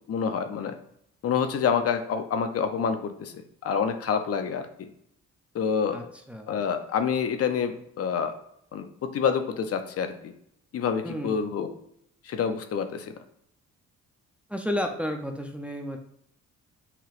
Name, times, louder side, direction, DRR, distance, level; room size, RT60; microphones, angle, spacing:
voice 1, 0.1-0.7 1.2-3.3 3.6-4.7 5.5-6.1 6.5-8.3 8.7-10.3 10.7-11.7 12.2-13.1, left 6 dB, 50° left, 8 dB, 0.6 m, -27 dB
voice 2, 5.9-6.5 11.0-11.4 14.5-16.0, equal, 5° right, 3 dB, 0.5 m, -32 dB
5.8 x 3.0 x 2.5 m, 0.72 s
cardioid pair, 90°, 30 cm